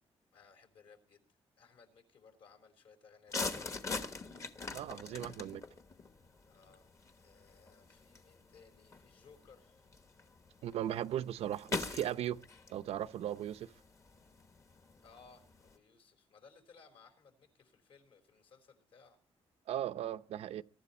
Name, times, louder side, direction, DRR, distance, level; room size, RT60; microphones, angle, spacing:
voice 1, 0.3-1.2 1.6-3.9 5.0-5.7 6.5-6.9 7.1-9.8 15.0-19.2, left 5 dB, 65° left, 4.3 m, -61 dB
sound 1, 3.3-15.8, left 3 dB, 30° left, 1.2 m, -44 dB
voice 2, 4.7-5.6 10.6-12.4 12.7-13.7 19.7-20.6, right 11 dB, 85° right, 0.7 m, -37 dB
23.0 x 12.0 x 4.3 m
wide cardioid pair, 170°, 10 cm